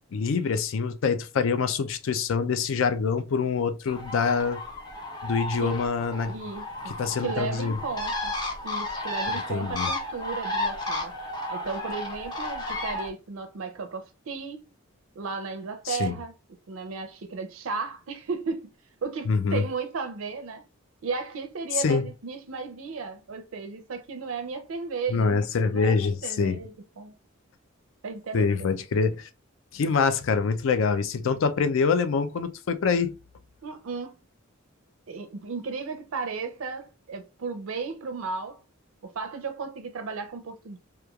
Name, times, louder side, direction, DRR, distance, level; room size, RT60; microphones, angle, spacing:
voice 1, 0.0-4.6 5.2-6.3 6.9-7.7 9.3-9.9 15.9-16.2 19.3-19.6 21.7-22.0 25.1-26.6 28.3-29.3 29.7-33.1, left 5 dB, 65° left, 0.4 m, -25 dB
Bird, 3.9-13.1, left 2 dB, 20° left, 0.6 m, -33 dB
voice 2, 6.3-8.4 8.6-11.2 11.5-14.6 15.2-16.3 16.7-18.7 19.0-20.6 21.0-25.4 25.6-27.1 28.0-28.8 33.6-34.2 35.1-38.6 39.0-40.8, right 4 dB, 75° right, 0.5 m, -35 dB
3.0 x 2.2 x 2.3 m
head